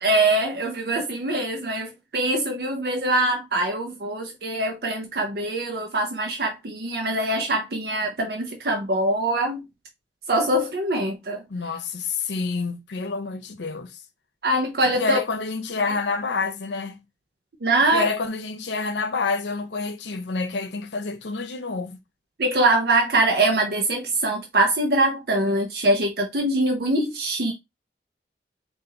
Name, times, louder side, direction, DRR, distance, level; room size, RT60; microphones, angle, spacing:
voice 1, 0.0-9.7 10.3-11.4 14.4-15.2 17.6-18.1 22.4-27.5, right 2 dB, 60° right, 0.7 m, -23 dB
voice 2, 11.5-14.0 14.9-17.0 17.9-22.0, left 4 dB, 85° left, 0.7 m, -28 dB
3.9 x 2.6 x 3.8 m
head